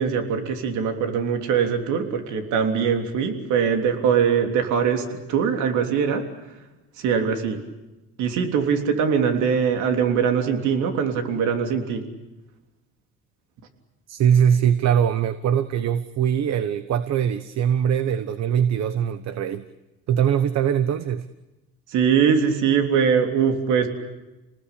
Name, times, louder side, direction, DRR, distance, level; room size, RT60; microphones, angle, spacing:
voice 1, 0.0-6.2 7.0-7.6 8.2-12.0 21.9-23.9, right 7 dB, 80° right, 5 dB, 3.4 m, -22 dB
voice 2, 14.1-19.6 20.1-21.3, right 8 dB, 60° right, 12 dB, 1.2 m, -22 dB
29.0 x 20.0 x 8.5 m, 1.0 s
cardioid pair, 100°, 30 cm